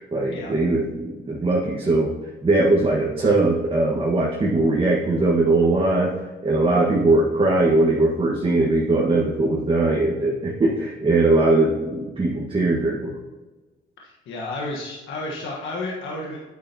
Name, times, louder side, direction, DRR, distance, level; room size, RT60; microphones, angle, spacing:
voice 1, 0.0-2.1 2.4-6.1 6.4-13.1, right 2 dB, 25° right, -3 dB, 1.4 m, -20 dB
voice 2, 14.0-16.4, left 2 dB, 80° left, -3 dB, 1.3 m, -31 dB
8.7 x 8.6 x 2.8 m, 1.2 s
cardioid pair, 90°, 20 cm